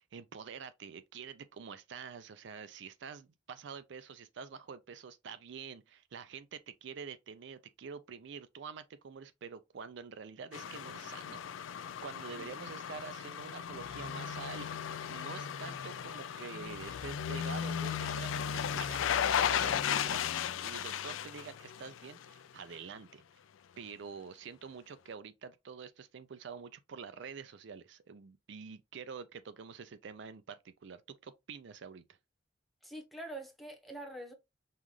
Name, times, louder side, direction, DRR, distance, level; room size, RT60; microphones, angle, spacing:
voice 1, 0.0-11.7 12.0-20.2 20.6-23.2 23.8-32.2, right 6 dB, 65° right, 0.4 m, -47 dB
sound 1, 10.5-22.4 22.7-22.8, left 8 dB, 85° left, 0.4 m, -36 dB
voice 2, 32.8-34.3, right 1 dB, ahead, 0.9 m, -45 dB
5.5 x 2.4 x 3.1 m
head